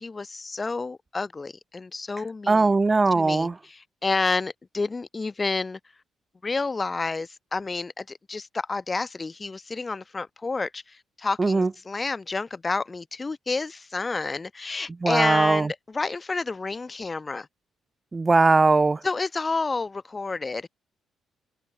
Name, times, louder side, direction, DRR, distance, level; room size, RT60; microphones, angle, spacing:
voice 1, 0.0-2.7 3.1-5.8 6.4-17.5 19.0-20.7, left 3 dB, 25° left, 2.1 m, -30 dB
voice 2, 2.5-3.6 11.4-11.7 15.0-15.7 18.1-19.0, right 3 dB, 25° right, 0.3 m, -20 dB
cardioid pair, 85°, 0 cm